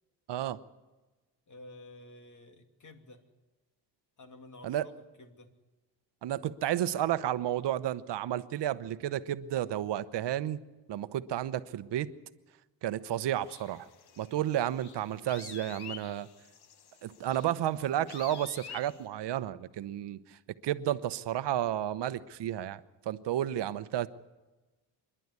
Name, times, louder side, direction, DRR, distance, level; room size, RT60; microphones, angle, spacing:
voice 1, 0.3-0.6 4.6-4.8 6.2-10.6 10.9-12.1 12.8-13.9 14.2-16.3 17.0-20.2 20.6-22.8 23.1-24.1, right 12 dB, 70° right, 14 dB, 1.0 m, -32 dB
voice 2, 1.5-3.2 4.2-5.5, left 2 dB, 45° left, 6 dB, 2.8 m, -51 dB
sound 1, 13.4-19.0, left 8 dB, 60° left, 1.5 m, -49 dB
26.5 x 11.5 x 9.7 m, 1.2 s
cardioid pair, 80°, 44 cm